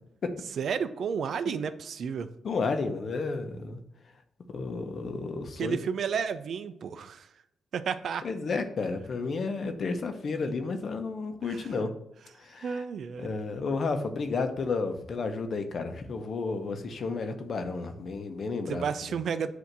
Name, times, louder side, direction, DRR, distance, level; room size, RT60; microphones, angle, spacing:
voice 1, 0.6-2.3 5.6-7.3 7.7-8.2 11.5-11.7 12.6-13.3 18.7-19.5, right 6 dB, 70° right, 11 dB, 0.5 m, -32 dB
voice 2, 2.4-3.8 4.5-5.8 8.2-11.9 12.4-12.8 13.2-18.8, left 4 dB, 55° left, 7 dB, 0.9 m, -32 dB
8.1 x 2.8 x 6.0 m, 0.80 s
cardioid pair, 110°, 0 cm